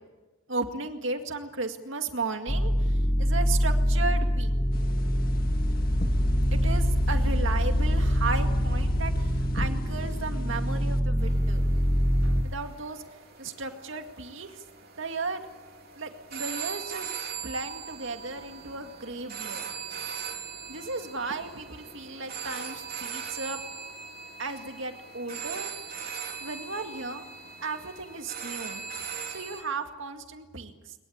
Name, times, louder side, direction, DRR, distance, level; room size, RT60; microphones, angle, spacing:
voice 1, 0.5-4.5 6.5-11.6 12.4-13.0 13.4-14.6 15.0-15.5 16.0-17.1 17.4-19.6 20.7-23.6 24.4-25.7 26.4-27.3 27.6-28.9 29.3-30.9, right 3 dB, 65° right, 6 dB, 2.1 m, -35 dB
sound 1, 2.5-12.4, equal, 20° left, 1.2 m, -25 dB
sound 2, 4.7-11.0, left 1 dB, 45° left, 1.9 m, -38 dB
sound 3, 11.2-29.6, right 6 dB, 45° right, 3.5 m, -40 dB
22.0 x 22.0 x 8.7 m, 1.2 s
head